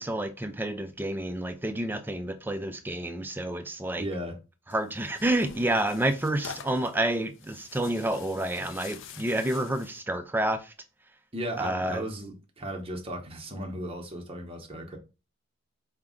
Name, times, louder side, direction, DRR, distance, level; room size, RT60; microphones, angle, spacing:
voice 1, 0.0-4.1 4.7-10.7 11.6-12.0, right 1 dB, 10° right, 0.3 m, -29 dB
voice 2, 4.0-4.4 11.3-15.0, right 1 dB, 25° right, 0.8 m, -35 dB
Tearing, 4.7-10.0, left 6 dB, 55° left, 0.5 m, -46 dB
4.9 x 2.3 x 3.6 m
head